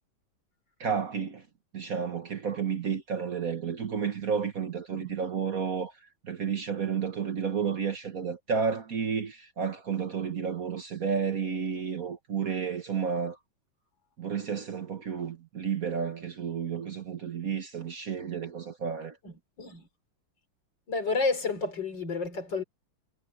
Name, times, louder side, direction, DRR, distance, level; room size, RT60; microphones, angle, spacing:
voice 1, 0.8-1.4 1.7-5.9 6.2-13.4 14.2-19.2, right 6 dB, 50° right, 1.5 m, -31 dB
voice 2, 19.2-19.9 20.9-22.6, left 3 dB, 60° left, 4.6 m, -31 dB
omnidirectional pair, 2.2 m